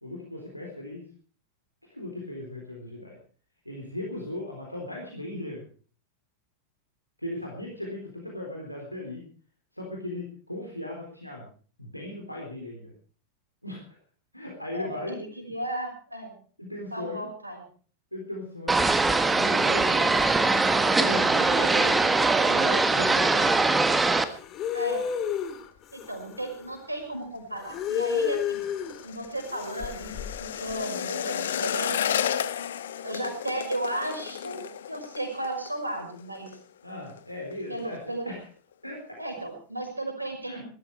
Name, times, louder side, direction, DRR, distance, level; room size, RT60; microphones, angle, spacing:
voice 1, 0.0-1.0 1.9-3.2 3.7-5.6 7.2-9.2 9.7-11.5 11.8-12.9 13.6-13.8 14.3-15.2 16.6-17.3 18.1-18.9 19.3-20.1 20.8-21.9 22.4-23.6 36.8-38.4 38.8-39.2 40.4-40.6, left 1 dB, 90° left, -1 dB, 3.9 m, -37 dB
voice 2, 14.7-16.3 16.9-17.6 21.5-22.0 24.7-25.0 25.9-28.6 29.0-32.0 33.0-36.6 37.7-38.3 39.2-40.6, right 1 dB, 85° right, 3 dB, 5.7 m, -34 dB
sound 1, 18.7-24.2, right 3 dB, 10° right, 1.4 m, -22 dB
sound 2, 24.0-26.7 27.6-29.0 29.4-30.7, left 8 dB, 35° left, 2.0 m, -31 dB
sound 3, 27.6-36.6 36.9-37.2 37.5-38.0 38.4-38.5, left 9 dB, 60° left, 1.0 m, -33 dB
19.0 x 14.0 x 4.8 m, 0.43 s
figure-of-eight pair, 90°, 0 cm